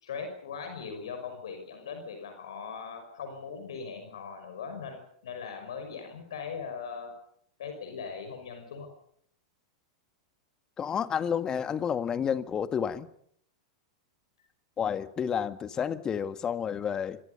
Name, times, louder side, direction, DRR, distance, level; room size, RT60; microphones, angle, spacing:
voice 1, 0.0-7.1 7.6-8.9, left 5 dB, 70° left, 5.8 m, -40 dB
voice 2, 10.8-13.1 14.8-17.2, left 7 dB, 25° left, 1.8 m, -30 dB
26.5 x 25.5 x 5.6 m
figure-of-eight pair, 95°, 3 cm